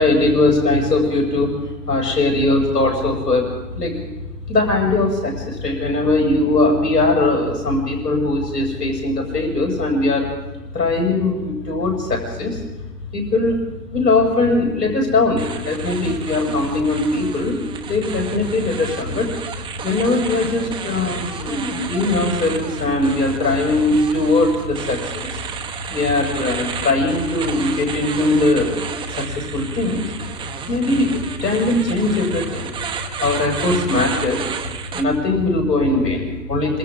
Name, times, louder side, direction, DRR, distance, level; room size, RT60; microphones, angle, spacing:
voice 1, 0.0-1.5 1.9-3.4 3.7-3.9 4.5-10.3 10.7-12.6 13.1-13.6 13.9-19.3 19.8-25.4 25.9-28.7 29.1-30.1 30.7-32.7 33.2-34.4 34.9-36.8, left 2 dB, 80° left, 0 dB, 7.1 m, -20 dB
sound 1, 15.4-35.0, right 7 dB, 10° right, 1.1 m, -32 dB
26.5 x 26.0 x 3.9 m, 1.1 s
hypercardioid pair, 135°, 49 cm